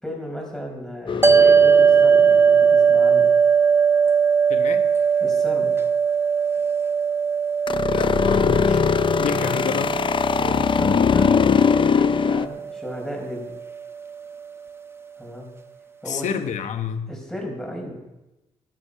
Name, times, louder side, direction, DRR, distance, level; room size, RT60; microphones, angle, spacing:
voice 1, 0.0-3.3 5.2-5.9 9.4-9.6 10.4-13.6 15.2-15.5 16.0-16.3 17.1-18.0, equal, 5° left, 0 dB, 5.2 m, -34 dB
sound 1, 1.1-2.7 7.7-12.5, left 6 dB, 40° left, 0.5 m, -21 dB
sound 2, 1.2-13.7, right 6 dB, 20° right, 0.9 m, -20 dB
voice 2, 4.5-4.8 7.9-8.9 9.2-9.9 16.1-17.1, left 7 dB, 70° left, 9 dB, 1.1 m, -29 dB
12.5 x 10.5 x 5.7 m, 0.98 s
cardioid pair, 75°, 13 cm